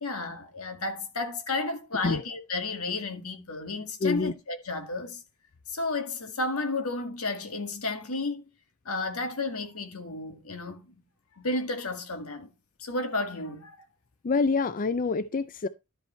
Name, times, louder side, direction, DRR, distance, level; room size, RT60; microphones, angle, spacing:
voice 1, 0.0-5.2 5.7-8.5 8.9-11.0 11.4-12.5 12.8-13.8, left 2 dB, 80° left, 2.1 m, -32 dB
voice 2, 4.0-4.3 14.2-15.7, left 4 dB, 40° left, 0.4 m, -26 dB
12.0 x 5.4 x 4.4 m
head